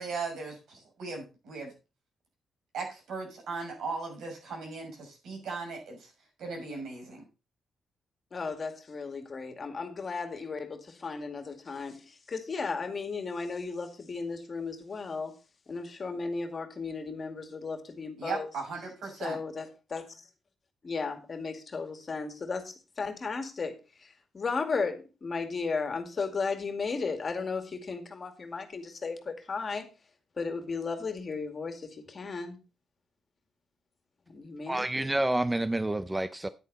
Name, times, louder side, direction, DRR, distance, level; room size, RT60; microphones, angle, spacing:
voice 1, 0.0-1.7 2.7-6.1 6.4-7.2 18.2-19.4, right 4 dB, 80° right, 6.3 m, -37 dB
voice 2, 8.3-15.3 15.7-18.5 19.2-20.1 20.8-23.7 24.3-29.9 30.4-32.6 34.3-35.1, left 4 dB, 35° left, 2.2 m, -35 dB
voice 3, 34.7-36.5, right 1 dB, 10° right, 0.5 m, -28 dB
10.5 x 9.4 x 4.1 m
cardioid pair, 125°, 0 cm